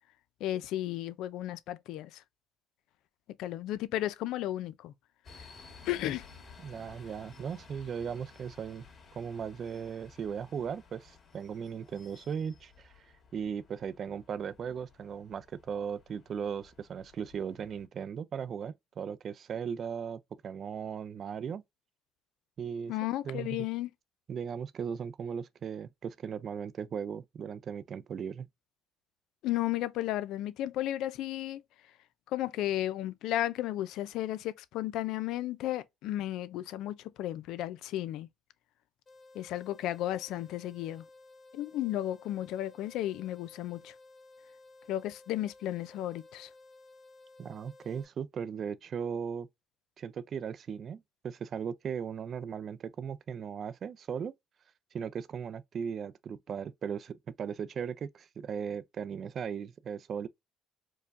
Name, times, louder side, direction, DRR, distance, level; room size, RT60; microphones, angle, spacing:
voice 1, 0.4-2.2 3.4-4.9 5.9-6.3 22.9-23.9 29.4-31.6 32.3-38.3 39.3-41.0 41.5-43.9 44.9-46.5, left 13 dB, 80° left, 0.4 m, -34 dB
sound 1, 5.2-17.9, left 4 dB, 40° left, 1.9 m, -56 dB
voice 2, 6.6-8.9 9.1-13.1 13.3-21.6 22.6-23.0 23.2-23.7 24.3-28.5 47.4-49.5 50.0-54.3 54.9-60.3, right 7 dB, 50° right, 0.5 m, -37 dB
sound 2, 39.1-48.1, left 2 dB, 25° left, 1.5 m, -56 dB
4.7 x 2.2 x 2.5 m
cardioid pair, 90°, 0 cm